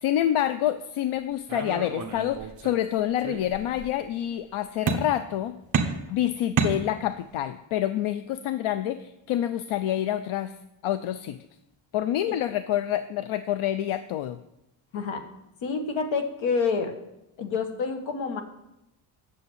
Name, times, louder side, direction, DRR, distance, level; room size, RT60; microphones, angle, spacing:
voice 1, 0.0-5.6 6.1-10.5 10.8-11.4 11.9-14.4, left 12 dB, 85° left, 11 dB, 0.6 m, -27 dB
sound 1, 1.5-2.9 3.2-3.9 4.9-5.4 5.7-7.3, right 5 dB, 40° right, 1.1 m, -30 dB
voice 2, 14.9-15.3 15.6-16.9 17.4-18.4, left 5 dB, 70° left, 6 dB, 1.6 m, -28 dB
8.4 x 7.1 x 8.0 m, 0.88 s
wide cardioid pair, 170°, 49 cm